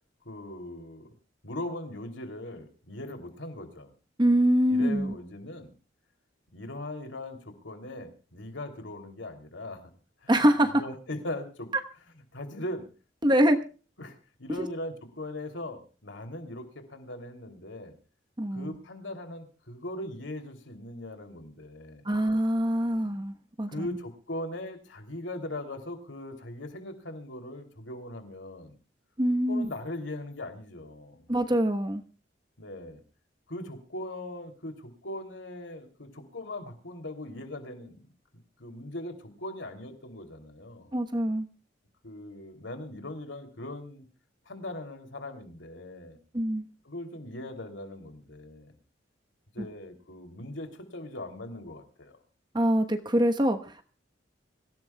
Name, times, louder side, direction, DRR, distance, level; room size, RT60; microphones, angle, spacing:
voice 1, 0.2-1.1 1.4-3.9 4.7-5.7 6.5-9.9 10.2-10.3 10.6-11.7 12.3-12.8 14.0-18.0 18.5-22.1 23.7-28.7 29.5-31.3 32.6-33.0 33.5-38.1 38.6-40.9 42.0-44.0 44.4-46.2 46.8-48.7 49.5-52.2, left 1 dB, 85° left, 5 dB, 3.1 m, -40 dB
voice 2, 4.2-5.1 10.3-10.8 13.2-13.6 14.6-14.7 18.4-18.7 22.0-23.9 29.2-29.7 31.3-32.0 40.9-41.5 46.3-46.7 49.6-49.7 52.5-53.8, equal, 25° right, 5 dB, 1.1 m, -24 dB
25.0 x 16.5 x 2.3 m, 0.36 s
head